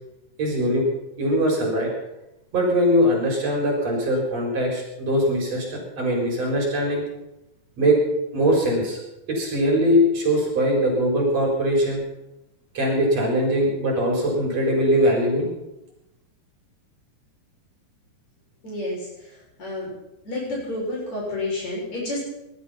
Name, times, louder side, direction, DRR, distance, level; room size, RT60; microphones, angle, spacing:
voice 1, 0.4-0.9 1.2-1.9 2.5-7.0 7.8-8.0 8.3-9.0 9.3-12.0 12.7-15.5, equal, 60° right, -1 dB, 5.6 m, -21 dB
voice 2, 18.6-19.9 20.2-22.2, left 2 dB, 65° left, -4 dB, 8.4 m, -30 dB
20.0 x 12.0 x 5.7 m, 0.93 s
omnidirectional pair, 3.4 m